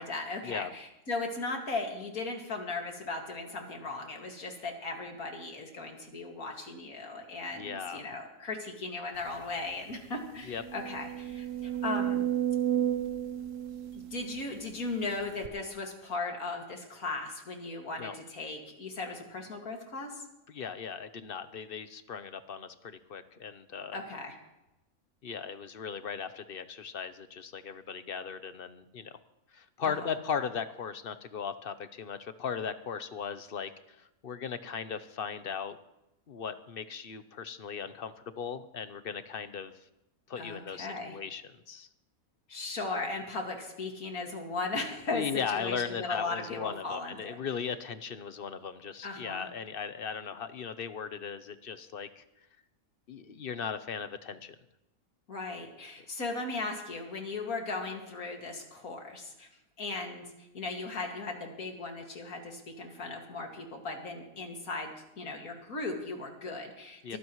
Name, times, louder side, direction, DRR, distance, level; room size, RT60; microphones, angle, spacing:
voice 1, 0.0-12.2 13.9-20.2 23.9-24.3 29.8-30.1 40.4-41.2 42.5-47.4 49.0-49.5 55.3-59.5 59.8-67.2, left 3 dB, 85° left, 2 dB, 2.6 m, -37 dB
voice 2, 7.5-8.1 10.4-10.6 18.0-18.2 20.5-24.0 25.2-29.1 29.5-35.8 36.3-39.7 40.3-41.9 45.1-52.2 53.1-54.6 67.0-67.2, left 6 dB, 45° left, 11 dB, 0.9 m, -37 dB
sound 1, 9.4-9.5 9.9-10.0 10.5-14.8 15.4-15.5, right 11 dB, 65° right, 1.1 m, -32 dB
22.5 x 15.0 x 3.1 m, 0.91 s
omnidirectional pair, 1.5 m